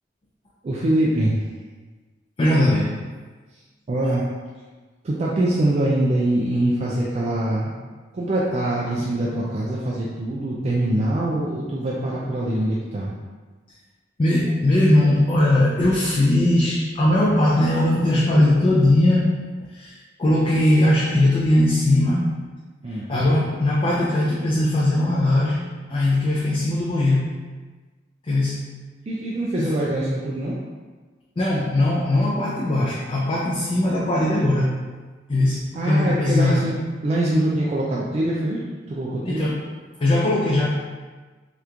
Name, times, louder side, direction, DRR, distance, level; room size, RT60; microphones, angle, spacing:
voice 1, 0.6-1.4 3.9-4.3 5.0-7.7 8.1-13.1 22.8-23.1 29.1-30.6 35.8-36.7 37.0-39.5, right 1 dB, 35° right, -5 dB, 0.3 m, -23 dB
voice 2, 2.4-2.9 14.2-19.3 19.7-22.3 22.9-27.3 28.2-28.6 29.6-29.7 31.4-34.8 35.3-36.6 39.2-39.7 40.0-40.7, left 1 dB, 30° left, -5 dB, 0.4 m, -20 dB
3.0 x 2.4 x 3.3 m, 1.4 s
head